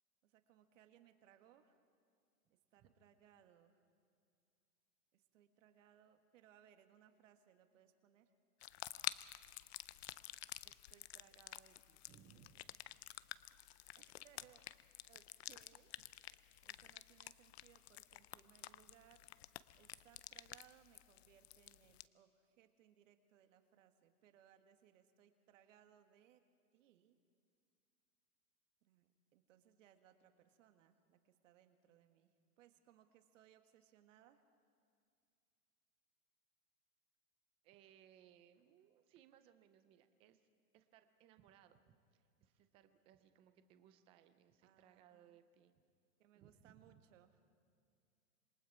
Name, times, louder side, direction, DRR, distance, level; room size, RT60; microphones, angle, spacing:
voice 1, 0.2-1.8 2.5-3.8 5.1-8.3 14.0-14.6 15.1-15.9 16.6-19.3 19.8-26.4 26.7-27.2 28.8-32.3 32.6-34.4 44.6-45.4 46.2-47.4, right 10 dB, 55° right, 7 dB, 1.8 m, -68 dB
sound 1, 8.6-22.0, left 14 dB, 45° left, 0.5 m, -51 dB
voice 2, 10.6-12.6 37.6-40.4 40.7-45.8 46.3-46.9, right 9 dB, 15° right, 10 dB, 0.5 m, -66 dB
27.0 x 20.5 x 4.9 m, 2.3 s
hypercardioid pair, 150°, 45 cm